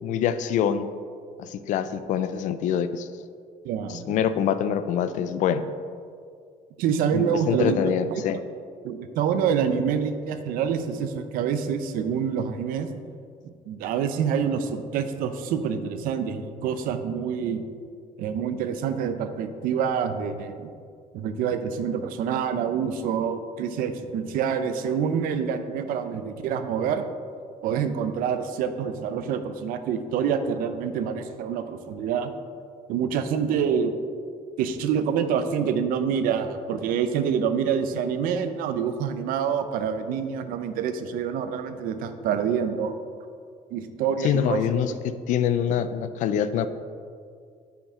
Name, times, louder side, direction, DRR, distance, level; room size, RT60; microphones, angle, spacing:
voice 1, 0.0-0.9 1.4-3.1 3.9-5.6 7.1-8.4 44.2-46.7, left 9 dB, 60° left, 12 dB, 0.4 m, -25 dB
voice 2, 3.6-4.2 6.8-7.8 8.1-8.2 8.8-12.9 13.7-17.6 18.2-20.7 21.1-27.0 27.6-32.3 32.9-33.9 34.6-42.9 43.7-44.6, right 7 dB, 90° right, 9 dB, 0.6 m, -26 dB
8.4 x 5.9 x 3.6 m, 2.2 s
cardioid pair, 165°, 14 cm